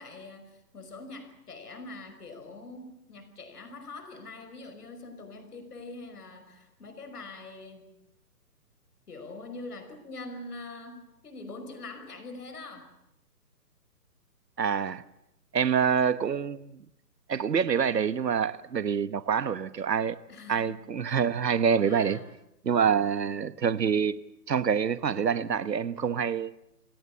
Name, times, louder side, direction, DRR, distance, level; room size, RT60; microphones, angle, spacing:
voice 1, 0.0-7.9 9.1-12.9 20.3-20.8 21.1-21.2 21.8-22.3, left 3 dB, 65° left, 5.6 m, -44 dB
voice 2, 14.6-15.0 15.5-16.8 17.3-20.2 20.5-22.2 22.6-24.2 24.5-26.5, right 7 dB, 80° right, 1.4 m, -26 dB
28.0 x 17.5 x 8.5 m
hypercardioid pair, 175°, 50 cm